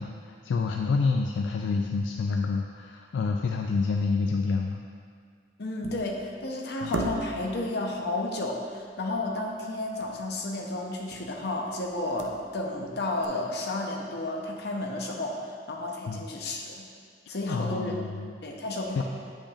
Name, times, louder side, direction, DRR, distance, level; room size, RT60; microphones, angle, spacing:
voice 1, 0.0-4.8 6.8-6.9 16.1-16.2 17.3-18.3 19.0-19.1, left 4 dB, 80° left, 2 dB, 0.3 m, -28 dB
voice 2, 5.6-16.9 17.3-17.9 18.4-19.0, left 2 dB, 60° left, 0 dB, 0.7 m, -32 dB
sound 1, 5.8-6.3 6.9-7.6 10.0-10.2 10.5-10.6 11.1-11.4 11.9-12.8 13.2-13.3, right 2 dB, 85° right, 0.5 m, -36 dB
8.5 x 5.2 x 2.4 m, 2.2 s
head